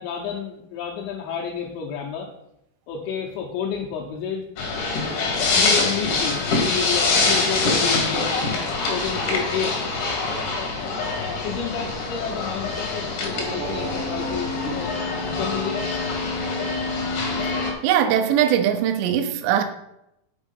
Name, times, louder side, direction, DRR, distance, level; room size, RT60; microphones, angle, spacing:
voice 1, 0.0-2.3 2.9-4.4 4.7-9.9 10.3-10.9 11.2-15.0 15.3-15.8, left 7 dB, 80° left, -4 dB, 3.1 m, -31 dB
sound 1, 4.6-17.7, left 3 dB, 65° left, 2.1 m, -24 dB
sound 2, 13.3-16.0 18.1-18.8, right 4 dB, 60° right, 2.6 m, -38 dB
voice 2, 17.8-19.6, right 10 dB, 80° right, 7 dB, 2.6 m, -20 dB
7.3 x 4.6 x 5.3 m, 0.82 s
omnidirectional pair, 5.6 m